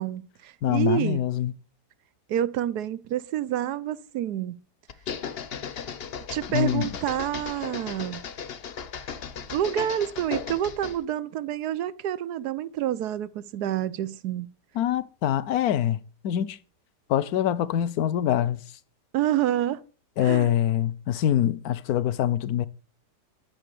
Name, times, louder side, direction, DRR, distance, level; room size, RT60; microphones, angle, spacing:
voice 1, 0.0-1.2 2.3-4.6 6.3-8.2 9.5-14.5 19.1-19.8 20.2-20.5, right 11 dB, 70° right, 1.2 m, -28 dB
voice 2, 0.6-1.5 6.5-6.9 14.8-16.0 16.2-16.6 17.1-18.6 20.2-22.7, left 11 dB, 65° left, 1.2 m, -24 dB
sound 1, 4.9-11.0, left 7 dB, 45° left, 0.8 m, -36 dB
12.0 x 6.8 x 6.9 m
omnidirectional pair, 1.8 m